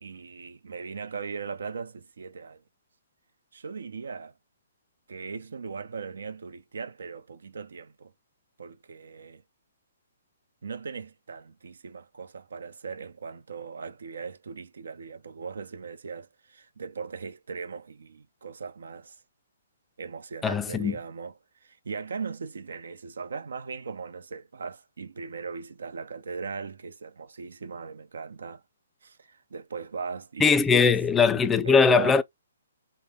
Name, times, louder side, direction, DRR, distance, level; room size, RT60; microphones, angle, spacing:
voice 1, 0.0-2.6 3.5-4.3 5.1-8.1 8.6-9.4 10.6-19.2 20.0-21.3 21.6-28.6 29.0-31.0 31.6-32.2, right 5 dB, 80° right, 0.7 m, -39 dB
voice 2, 20.4-21.0 30.4-32.2, left 5 dB, 10° left, 0.4 m, -20 dB
5.4 x 2.2 x 3.5 m
hypercardioid pair, 155°, 0 cm